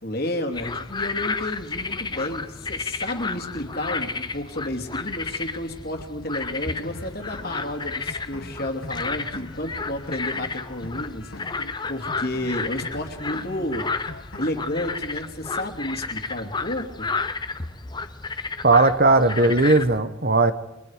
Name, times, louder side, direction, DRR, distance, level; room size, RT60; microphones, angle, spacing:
voice 1, 0.0-13.9 14.4-17.1, left 1 dB, 45° left, 5 dB, 2.9 m, -31 dB
sound 1, 0.5-20.0, left 4 dB, 20° left, 0.9 m, -32 dB
sound 2, 6.8-14.8, left 2 dB, 80° left, 2.2 m, -42 dB
voice 2, 18.6-20.5, right 3 dB, 45° right, 12 dB, 1.1 m, -17 dB
29.5 x 25.0 x 5.0 m, 0.90 s
head